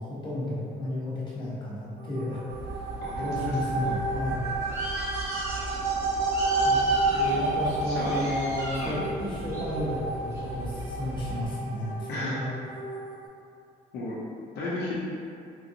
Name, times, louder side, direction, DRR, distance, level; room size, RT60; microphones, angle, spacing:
voice 1, 0.0-2.4 3.2-4.5 6.6-6.8 7.3-12.5, left 1 dB, 30° left, -8 dB, 1.1 m, -32 dB
sound 1, 2.0-13.3, right 3 dB, 80° right, 0.6 m, -30 dB
Bird, 2.5-11.4, right 1 dB, 15° right, 0.8 m, -37 dB
voice 2, 3.0-3.9 7.0-7.4 7.8-8.1 8.8-9.0 12.1-12.4 13.9-14.2 14.5-14.9, left 1 dB, 75° left, -6 dB, 0.7 m, -34 dB
3.7 x 2.5 x 2.8 m, 2.5 s
cardioid pair, 110°, 17 cm